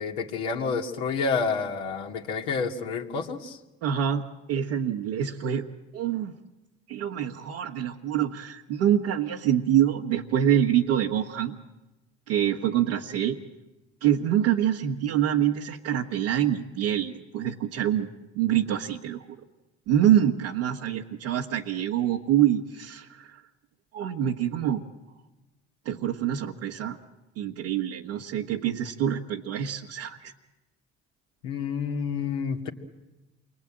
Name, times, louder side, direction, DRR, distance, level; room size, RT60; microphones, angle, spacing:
voice 1, 0.0-3.6 31.4-32.7, left 5 dB, 80° left, 1 dB, 2.5 m, -29 dB
voice 2, 3.8-4.2 4.5-5.7 5.9-6.3 6.9-11.6 12.3-13.4 14.0-18.1 18.4-19.2 19.9-23.4 23.9-24.8 25.8-27.0 27.4-30.3, right 10 dB, 80° right, -2 dB, 1.5 m, -25 dB
28.5 x 23.0 x 8.8 m, 1.0 s
hypercardioid pair, 60°, 34 cm